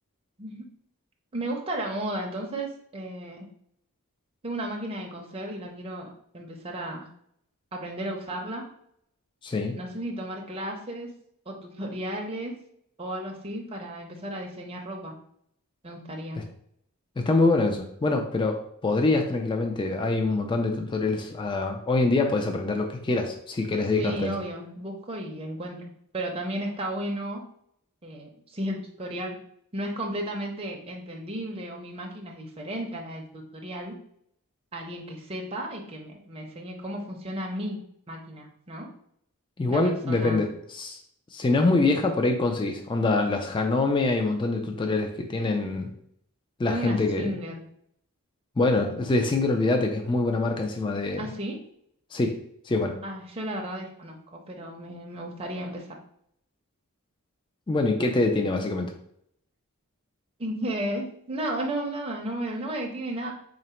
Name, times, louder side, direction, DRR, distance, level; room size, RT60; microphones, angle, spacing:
voice 1, 1.3-3.5 4.4-6.1 6.3-7.0 7.7-8.6 9.8-11.1 11.5-12.5 13.0-15.1 15.8-16.4 24.0-25.8 26.1-27.4 28.0-29.4 29.7-34.0 34.7-37.8 38.1-38.9 39.7-40.4 46.7-47.5 51.2-51.6 53.0-56.0 60.4-63.3, right 1 dB, 25° right, 0 dB, 0.6 m, -34 dB
voice 2, 9.4-9.8 16.4-16.5 17.2-24.3 39.6-41.0 41.3-45.9 46.6-47.3 48.6-51.2 52.1-52.4 52.7-53.0 57.7-58.9, left 2 dB, 20° left, 3 dB, 0.3 m, -25 dB
3.8 x 2.0 x 4.3 m, 0.69 s
head